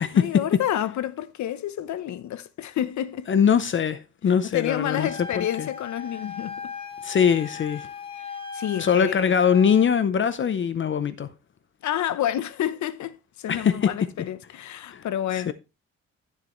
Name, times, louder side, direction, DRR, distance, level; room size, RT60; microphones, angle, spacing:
voice 1, 0.1-3.3 4.5-6.7 8.2-9.3 11.8-15.5, left 11 dB, 80° left, 0.8 m, -29 dB
voice 2, 3.3-5.1 5.3-5.7 7.0-7.9 8.8-11.3 13.5-13.9 14.9-15.1 15.3-15.5, left 7 dB, 40° left, 0.7 m, -22 dB
Wind instrument woodwind instrument, 4.9-9.9, left 5 dB, 20° left, 1.8 m, -38 dB
12.0 x 7.4 x 3.1 m
cardioid pair, 140°, 29 cm